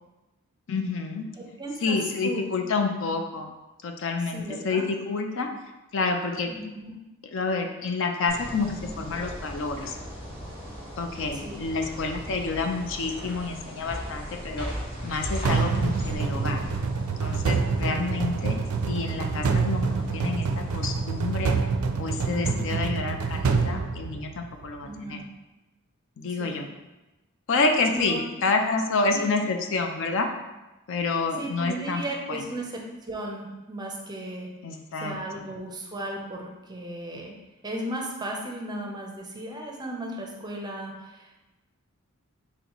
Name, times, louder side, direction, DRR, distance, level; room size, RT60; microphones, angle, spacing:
voice 1, 0.7-1.2 1.8-3.5 3.8-5.5 5.9-6.5 7.3-10.0 11.0-14.7 15.0-16.6 17.2-18.6 18.9-21.5 22.0-25.2 26.2-26.7 27.5-30.3 30.9-32.0 32.3-32.4 34.6-35.1, left 3 dB, 60° left, 4 dB, 0.4 m, -28 dB
voice 2, 1.4-2.4 4.3-4.9 6.5-7.0 11.3-11.7 15.7-16.2 17.8-18.1 22.4-22.9 24.8-25.3 26.4-26.6 27.9-28.2 29.1-29.3 31.4-34.5 35.0-37.4 37.6-41.5, right 1 dB, 20° right, 0 dB, 0.5 m, -36 dB
sound 1, 8.3-21.4, equal, 20° left, 1.1 m, -38 dB
sound 2, 15.4-24.6, right 4 dB, 75° right, 0.4 m, -27 dB
4.3 x 4.0 x 3.0 m, 1.0 s
head